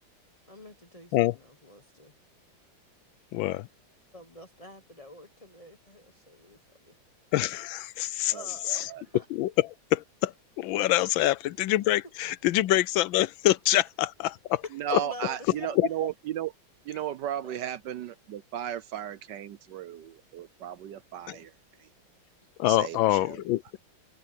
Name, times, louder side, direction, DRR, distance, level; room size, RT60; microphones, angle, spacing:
voice 1, 0.5-2.1 4.1-6.6 6.8-6.9 8.2-9.3 14.9-15.8 17.4-17.7, equal, 30° left, 0.7 m, -47 dB
voice 2, 3.3-3.7 7.3-8.3 8.7-8.9 9.3-9.5 9.9-14.6 14.9-15.0 15.8-15.9 21.3-21.4 22.6-23.8, left 15 dB, 75° left, 1.3 m, -25 dB
voice 3, 8.3-9.0 14.7-16.5 16.8-21.5 22.7-23.4, right 11 dB, 70° right, 1.2 m, -35 dB
omnidirectional pair, 2.2 m